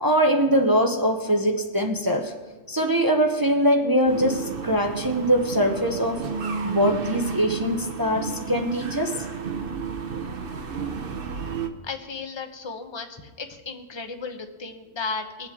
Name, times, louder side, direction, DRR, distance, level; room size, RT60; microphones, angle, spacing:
voice 1, 0.0-2.3 2.7-6.3 6.6-9.2, equal, 25° right, 3 dB, 0.6 m, -22 dB
sound 1, 4.1-11.7, right 5 dB, 50° right, 1.0 m, -32 dB
voice 2, 11.8-15.5, left 4 dB, 25° left, 6 dB, 0.9 m, -34 dB
22.0 x 7.7 x 3.6 m, 1.3 s
omnidirectional pair, 1.3 m